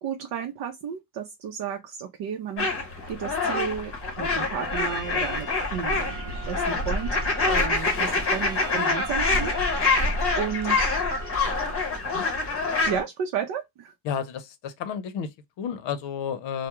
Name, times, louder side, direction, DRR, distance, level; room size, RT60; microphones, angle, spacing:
voice 1, 0.0-2.7 3.1-7.1 7.4-9.6 10.4-11.0 12.9-13.9, right 7 dB, 60° right, 0.7 m, -32 dB
sound 1, 2.6-13.0, left 3 dB, 25° left, 0.8 m, -26 dB
Trumpet, 4.6-12.0, right 4 dB, 10° right, 0.6 m, -42 dB
voice 2, 14.0-16.7, left 7 dB, 60° left, 0.7 m, -32 dB
2.3 x 2.1 x 2.9 m
cardioid pair, 155°, 50 cm